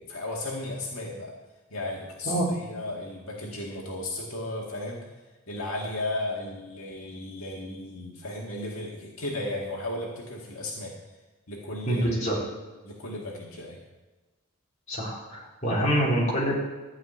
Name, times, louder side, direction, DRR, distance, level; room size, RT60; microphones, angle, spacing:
voice 1, 0.0-1.3 1.7-5.1 5.5-10.9 11.5-12.4 12.8-13.8, left 1 dB, 80° left, -2 dB, 2.0 m, -35 dB
voice 2, 11.9-12.4 14.9-16.5, equal, 35° left, -6 dB, 4.1 m, -26 dB
13.0 x 5.2 x 9.0 m, 1.2 s
head